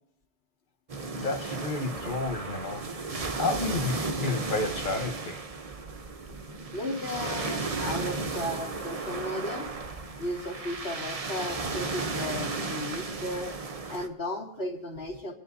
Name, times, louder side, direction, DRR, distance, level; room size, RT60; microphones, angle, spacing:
sound 1, 0.9-14.1, right 3 dB, 35° right, 0.9 m, -34 dB
voice 1, 1.1-2.9 3.4-5.4, left 3 dB, 50° left, 5 dB, 1.3 m, -31 dB
voice 2, 6.7-9.7 10.2-13.5 13.9-15.3, left 1 dB, 70° left, -3 dB, 2.7 m, -35 dB
30.0 x 10.0 x 2.7 m, 0.73 s
omnidirectional pair, 1.1 m